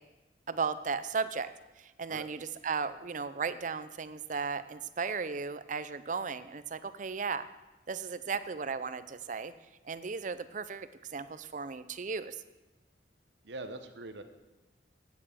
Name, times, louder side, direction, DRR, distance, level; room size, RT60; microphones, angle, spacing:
voice 1, 0.5-1.5 1.8-7.5 7.9-9.5 9.9-12.4, right 5 dB, 45° right, 14 dB, 0.5 m, -35 dB
voice 2, 13.4-14.2, right 2 dB, 75° right, 9 dB, 1.0 m, -42 dB
9.1 x 8.6 x 7.5 m, 1.1 s
head